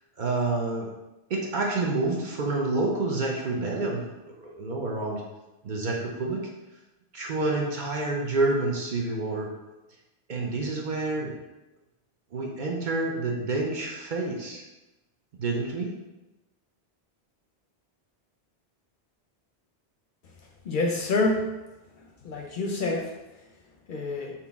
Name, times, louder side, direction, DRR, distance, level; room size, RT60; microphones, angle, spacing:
voice 1, 0.2-0.9 1.3-4.0 4.4-5.2 5.6-6.4 7.1-9.5 10.3-11.3 12.3-14.6 15.4-15.9, right 2 dB, 55° right, -1 dB, 0.7 m, -28 dB
voice 2, 20.7-21.5 22.2-23.2 23.9-24.3, left 2 dB, 60° left, 1 dB, 0.6 m, -27 dB
4.1 x 2.8 x 3.5 m, 1.0 s
omnidirectional pair, 1.1 m